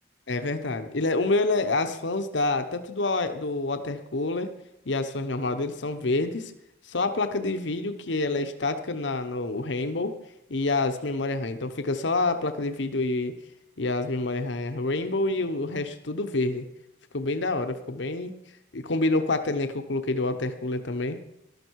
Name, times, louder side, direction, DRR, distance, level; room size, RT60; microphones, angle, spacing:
voice 1, 0.3-4.5 4.9-6.5 6.8-10.2 10.5-13.4 13.8-16.7 17.1-18.4 18.7-21.2, left 2 dB, 65° left, 9 dB, 0.9 m, -27 dB
13.5 x 12.5 x 4.7 m, 0.83 s
head